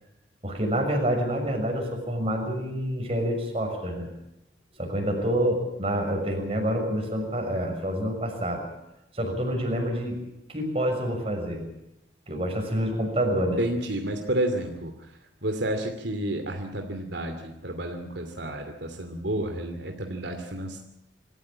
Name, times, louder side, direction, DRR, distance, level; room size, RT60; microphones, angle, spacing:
voice 1, 0.4-4.1 4.8-8.6 9.1-10.2 10.5-11.7 12.3-13.6, equal, 30° right, 2 dB, 6.3 m, -27 dB
voice 2, 13.6-14.9 15.4-17.4 17.6-20.8, right 1 dB, 70° right, 4 dB, 2.7 m, -30 dB
26.5 x 14.5 x 8.7 m, 0.90 s
head